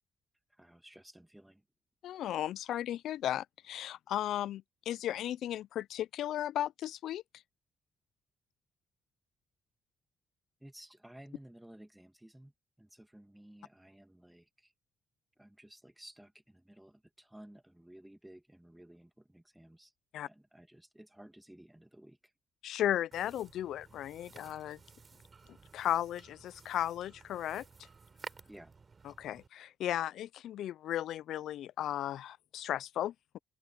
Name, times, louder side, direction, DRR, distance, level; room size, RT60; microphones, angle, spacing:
voice 1, 0.5-1.6 10.6-12.5 12.8-14.7 15.4-19.9 20.2-22.3 28.5-28.7, right 1 dB, 5° right, 1.6 m, -55 dB
voice 2, 2.0-7.2 20.1-20.3 22.6-24.8 25.7-27.6 29.0-33.4, left 12 dB, 75° left, 0.3 m, -35 dB
sound 1, 23.1-29.5, right 4 dB, 35° right, 3.5 m, -54 dB
cardioid pair, 90°, 0 cm